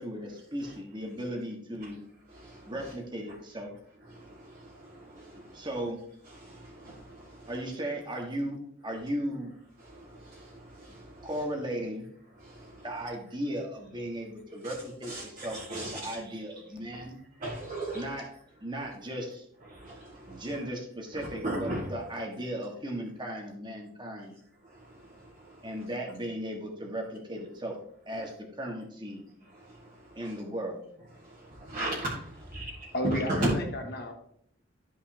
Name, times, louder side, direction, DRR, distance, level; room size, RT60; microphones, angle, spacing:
voice 1, 0.0-2.0 2.7-3.7 5.5-6.0 7.5-8.6 8.8-9.5 11.2-12.1 12.8-17.2 17.9-18.2 18.6-19.5 20.3-24.4 25.6-27.7 28.1-29.2 30.2-30.8, equal, 25° right, 1 dB, 1.7 m, -36 dB
voice 2, 2.3-2.9 3.3-3.4 4.0-5.7 6.3-7.6 9.8-11.4 12.4-12.9 14.6-14.8 15.0-16.2 16.9-17.0 17.4-18.2 18.7-18.9 19.6-20.6 21.1-21.9 24.6-25.8 29.5-30.4 31.1-33.6, right 1 dB, 40° right, -8 dB, 2.0 m, -37 dB
voice 3, 32.9-34.1, equal, 55° left, 3 dB, 1.6 m, -32 dB
12.5 x 5.5 x 2.9 m, 0.66 s
head